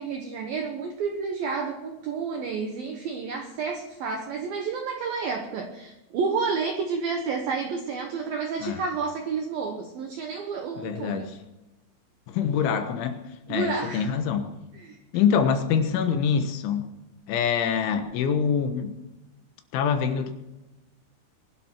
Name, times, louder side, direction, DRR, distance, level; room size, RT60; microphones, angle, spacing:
voice 1, 0.0-11.3 13.5-14.1 14.8-15.0, right 5 dB, 80° right, 2.1 m, -30 dB
voice 2, 10.8-11.4 12.3-13.2 13.5-14.5 15.1-16.9 17.3-19.0 19.7-20.3, left 7 dB, 75° left, 3.4 m, -25 dB
23.0 x 12.0 x 4.5 m
omnidirectional pair, 5.9 m